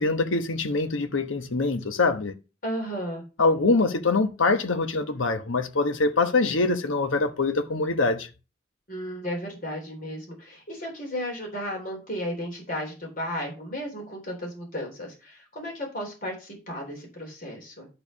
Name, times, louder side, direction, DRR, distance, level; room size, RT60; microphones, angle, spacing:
voice 1, 0.0-2.3 3.4-8.3, left 3 dB, 85° left, 1.1 m, -24 dB
voice 2, 2.6-3.2 8.9-17.9, equal, 45° left, 3.6 m, -34 dB
11.0 x 4.5 x 5.5 m
head